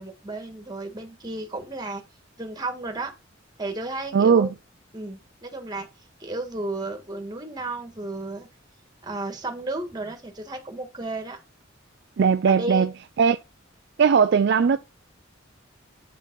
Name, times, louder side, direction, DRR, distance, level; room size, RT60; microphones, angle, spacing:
voice 1, 0.0-2.0 2.4-3.1 3.6-4.5 4.9-5.9 6.2-8.5 9.0-11.4 12.5-12.9, right 2 dB, 20° right, 1.8 m, -33 dB
voice 2, 4.1-4.5 12.2-12.9 13.2-13.4 14.0-14.8, right 6 dB, 60° right, 0.4 m, -18 dB
8.7 x 5.3 x 4.0 m
head